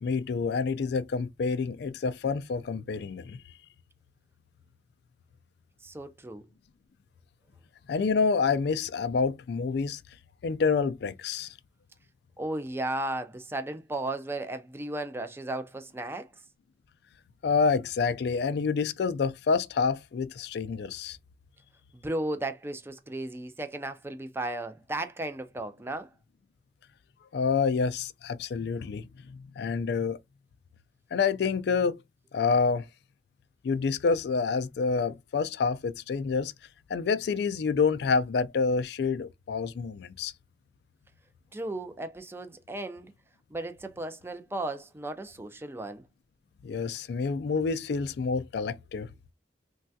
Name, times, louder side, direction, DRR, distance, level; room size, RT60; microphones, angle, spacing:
voice 1, 0.0-3.4 7.9-10.0 10.4-11.5 17.4-21.2 27.3-30.2 31.1-32.0 32.3-32.9 33.6-36.5 36.9-40.3 46.6-49.1, left 5 dB, 60° left, 0.3 m, -28 dB
voice 2, 5.8-6.5 12.4-16.3 21.9-26.1 41.5-43.1 43.5-46.0, right 1 dB, 15° right, 0.4 m, -35 dB
3.2 x 2.3 x 2.6 m
head